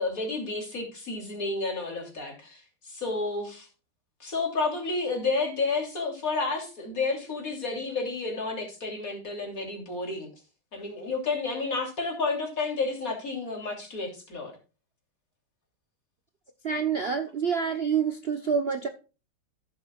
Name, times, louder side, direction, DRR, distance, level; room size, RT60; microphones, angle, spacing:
voice 1, 0.0-3.7 4.2-10.3 10.7-14.5, left 3 dB, 40° left, 1 dB, 3.4 m, -31 dB
voice 2, 16.6-18.9, right 6 dB, 70° right, 7 dB, 0.5 m, -27 dB
15.0 x 7.8 x 2.4 m, 0.31 s
omnidirectional pair, 2.4 m